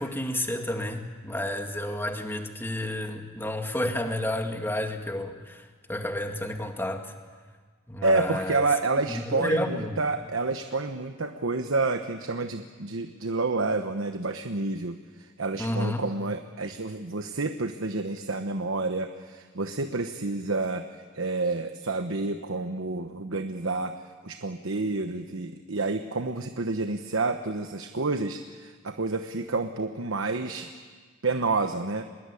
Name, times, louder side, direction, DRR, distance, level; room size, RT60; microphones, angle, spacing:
voice 1, 0.0-5.6 5.9-7.1 7.9-8.7 9.1-10.0 15.6-16.0, left 1 dB, 10° left, 4 dB, 2.0 m, -30 dB
voice 2, 8.0-23.9 24.2-30.7 31.2-32.1, right 3 dB, 90° right, 7 dB, 1.1 m, -29 dB
24.5 x 20.5 x 9.8 m, 1.5 s
head